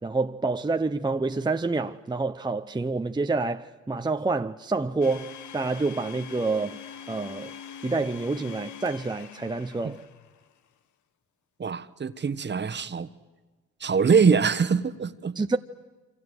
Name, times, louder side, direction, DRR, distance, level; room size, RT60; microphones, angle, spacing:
voice 1, 0.0-6.8 7.1-7.5 7.8-10.0 15.4-15.6, right 3 dB, 15° right, 0.8 m, -28 dB
Domestic sounds home sounds, 5.0-10.5, left 8 dB, 70° left, 1.4 m, -43 dB
voice 2, 11.6-13.1 13.8-15.4, right 5 dB, 35° right, 1.4 m, -23 dB
28.5 x 26.0 x 8.1 m
cardioid pair, 90°, 30 cm